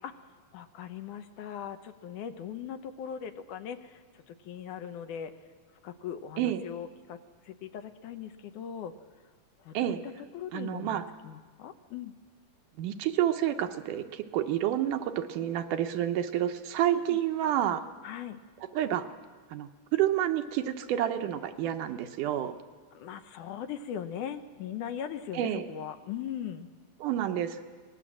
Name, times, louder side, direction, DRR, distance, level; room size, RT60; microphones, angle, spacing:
voice 1, 0.5-4.0 4.3-5.3 5.8-7.2 7.5-8.9 9.7-10.0 10.3-12.1 17.0-17.2 18.0-18.4 23.0-26.7, left 9 dB, 75° left, 9 dB, 2.3 m, -39 dB
voice 2, 10.5-11.0 12.8-17.8 18.7-19.0 19.5-22.5 25.3-25.6 27.0-27.6, right 11 dB, 80° right, 7 dB, 2.4 m, -29 dB
24.0 x 19.5 x 7.4 m, 1.5 s
omnidirectional pair, 3.8 m